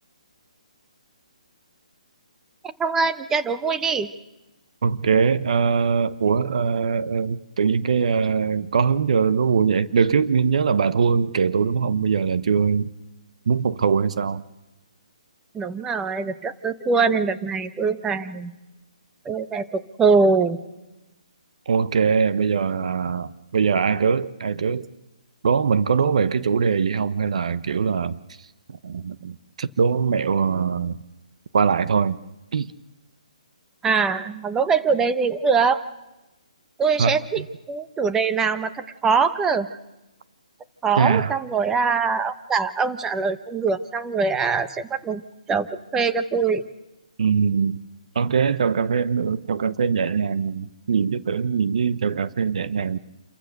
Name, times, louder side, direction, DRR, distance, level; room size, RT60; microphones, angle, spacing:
voice 1, 2.8-4.1 15.5-18.5 19.2-20.6 33.8-35.8 36.8-39.7 40.8-45.2 45.5-46.6, right 5 dB, 10° right, 11 dB, 0.9 m, -23 dB
voice 2, 4.8-12.9 13.5-14.4 21.7-24.9 25.4-28.2 28.7-30.9 31.5-32.2 32.5-32.7 37.0-37.5 41.0-41.3 47.2-47.8 48.1-53.0, right 6 dB, 60° right, 15 dB, 0.9 m, -22 dB
28.0 x 14.5 x 6.6 m, 1.0 s
hypercardioid pair, 145°, 4 cm